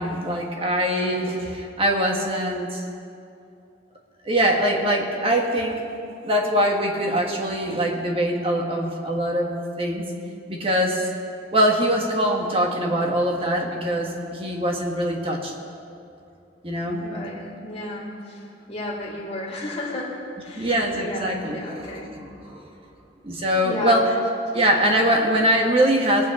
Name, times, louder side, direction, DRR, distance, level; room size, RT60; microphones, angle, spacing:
voice 1, 0.0-2.8 4.2-5.8 6.2-10.0 10.5-11.1 11.5-15.5 16.6-17.1 20.6-22.7 23.2-24.0 24.5-26.3, equal, 30° right, 0 dB, 1.6 m, -23 dB
voice 2, 17.0-18.4 18.7-20.2 20.4-20.7 21.0-22.2 23.6-24.0, left 1 dB, 35° left, -4 dB, 2.3 m, -33 dB
20.0 x 8.8 x 4.3 m, 2.5 s
head